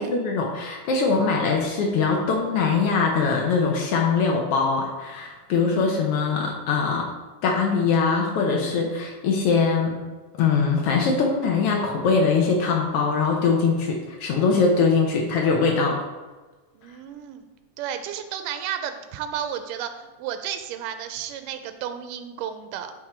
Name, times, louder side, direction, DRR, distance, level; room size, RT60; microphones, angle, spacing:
voice 1, 0.0-7.1 7.4-10.0 10.4-16.0, left 4 dB, 85° left, 0 dB, 1.2 m, -22 dB
voice 2, 16.7-17.5 17.8-22.9, right 9 dB, 90° right, 8 dB, 2.2 m, -32 dB
9.1 x 3.7 x 4.4 m, 1.2 s
omnidirectional pair, 3.7 m